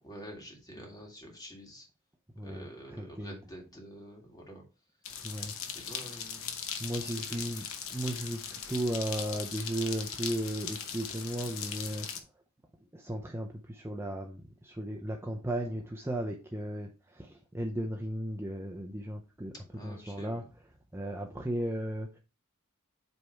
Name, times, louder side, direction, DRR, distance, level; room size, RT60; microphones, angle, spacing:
voice 1, 0.0-1.9 2.4-4.7 5.7-6.6 7.0-7.6 19.7-20.5, equal, 15° left, 1 dB, 2.0 m, -48 dB
voice 2, 2.3-2.7 3.0-3.4 5.2-5.5 6.8-7.6 7.9-12.1 12.8-19.5 19.8-20.4 20.9-22.2, right 1 dB, 10° right, 2 dB, 0.5 m, -35 dB
sound 1, 5.0-12.2, left 7 dB, 65° left, 1.0 m, -39 dB
8.0 x 3.4 x 4.5 m, 0.33 s
head